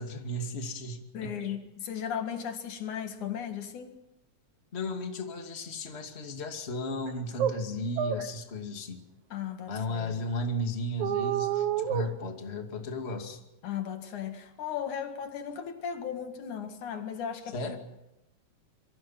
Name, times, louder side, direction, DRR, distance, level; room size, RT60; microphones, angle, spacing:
voice 1, 0.0-1.6 4.7-9.0 9.7-13.4 17.5-17.8, left 1 dB, 20° left, 2.4 m, -35 dB
voice 2, 1.1-4.0 9.3-10.2 13.6-17.8, left 8 dB, 80° left, 3.3 m, -36 dB
sound 1, 7.1-7.2 7.4-7.6 8.0-8.3 11.0-12.1, right 9 dB, 80° right, 2.7 m, -28 dB
27.5 x 24.0 x 5.9 m
omnidirectional pair, 3.4 m